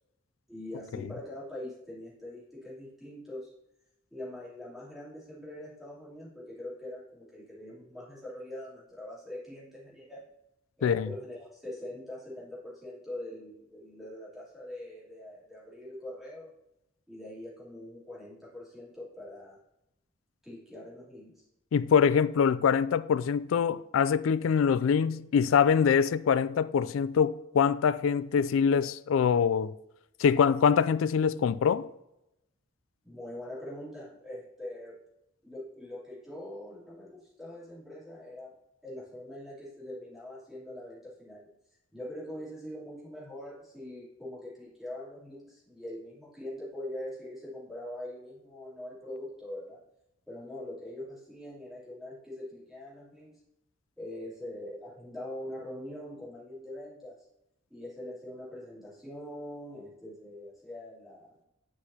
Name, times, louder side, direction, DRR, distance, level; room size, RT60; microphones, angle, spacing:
voice 1, 0.5-3.5 4.1-10.3 10.8-16.5 17.1-19.6 20.4-21.4 33.0-35.0 35.4-38.5 38.8-41.5 41.9-49.8 50.3-53.4 54.0-57.2 57.7-61.4, left 1 dB, ahead, 3.1 m, -43 dB
voice 2, 21.7-29.7 30.2-31.9, left 7 dB, 75° left, 0.3 m, -24 dB
9.9 x 6.2 x 2.8 m
head